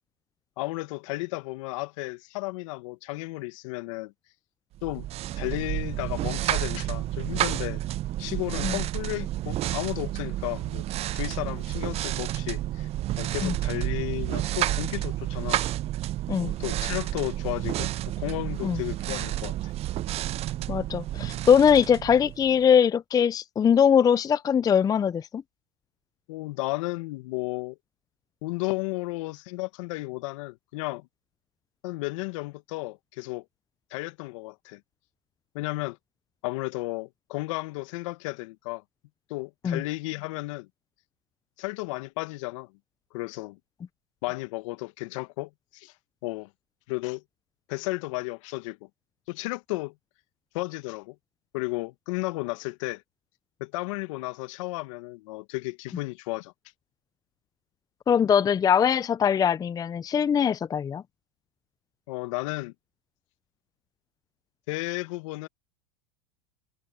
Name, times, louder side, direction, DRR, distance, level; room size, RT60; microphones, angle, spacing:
voice 1, 0.6-4.1 4.8-5.1 5.3-7.8 8.2-10.8 11.1-12.9 13.2-15.6 16.4-19.7 26.3-27.8 28.4-31.1 31.8-33.4 33.9-34.8 35.5-36.0 36.4-38.8 39.3-40.7 41.6-42.7 43.1-43.6 44.2-45.9 46.2-46.5 46.9-47.2 47.7-48.8 49.3-49.9 50.5-51.1 51.5-53.0 53.6-56.5 62.1-62.7 64.7-65.5, left 22 dB, 70° left, 1.5 m, -33 dB
sound 1, 4.8-22.6, right 14 dB, 40° right, 0.5 m, -30 dB
voice 2, 20.7-25.4 39.6-39.8 58.1-61.0, left 8 dB, 20° left, 0.5 m, -22 dB
hypercardioid pair, 95°, 17 cm